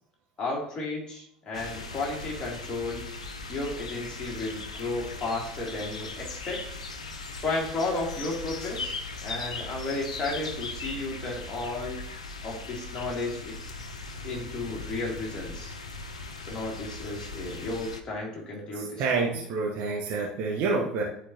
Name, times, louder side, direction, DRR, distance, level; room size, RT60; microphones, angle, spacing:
voice 1, 0.4-3.0 3.5-6.6 7.3-12.0 12.4-13.6 14.2-15.8 16.5-19.2, left 2 dB, 25° left, -4 dB, 2.9 m, -33 dB
sound 1, 1.5-18.0, left 3 dB, 80° left, 0.5 m, -39 dB
voice 2, 18.7-21.0, right 4 dB, 55° right, -2 dB, 1.1 m, -28 dB
11.5 x 4.4 x 2.9 m, 0.71 s
figure-of-eight pair, 70°, 3 cm